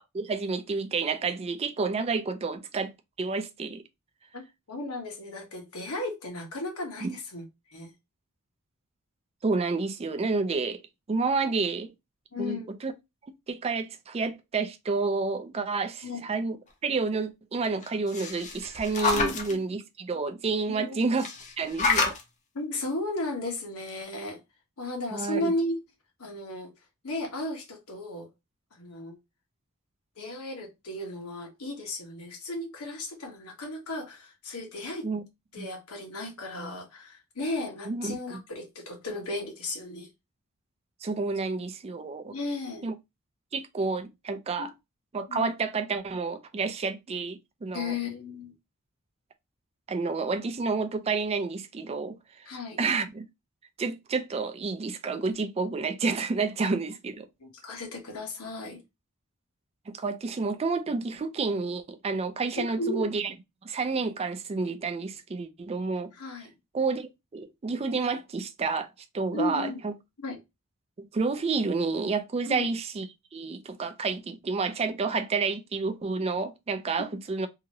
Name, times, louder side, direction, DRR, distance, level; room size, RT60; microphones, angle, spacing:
voice 1, 0.1-2.9 3.2-3.8 7.0-7.2 9.4-10.8 11.1-11.9 12.4-12.9 13.2-21.3 21.6-22.2 25.1-25.5 35.0-35.2 35.6-35.7 37.9-38.4 41.0-42.3 42.8-42.9 43.5-44.7 45.1-47.9 49.9-53.2 53.8-57.3 59.9-63.3 63.6-66.1 66.7-68.9 69.1-69.9 71.0-73.1 73.3-77.5, right 4 dB, 30° right, 0.3 m, -30 dB
voice 2, 4.3-7.4 7.7-7.9 12.3-12.7 16.0-16.2 19.1-19.6 20.7-21.0 22.5-24.4 24.8-25.8 26.2-26.7 27.0-28.3 28.7-29.2 30.2-35.1 35.5-40.1 42.3-42.9 44.6-44.7 45.3-45.5 47.7-48.5 52.5-52.8 57.4-58.8 62.6-63.1 66.1-66.5 69.3-69.8 70.2-70.4 72.5-72.7, left 2 dB, 80° left, 1.0 m, -35 dB
sound 1, 17.8-19.5 21.2-22.2 23.5-23.6 23.9-24.0, left 4 dB, 35° left, 0.6 m, -28 dB
2.8 x 2.5 x 2.8 m
head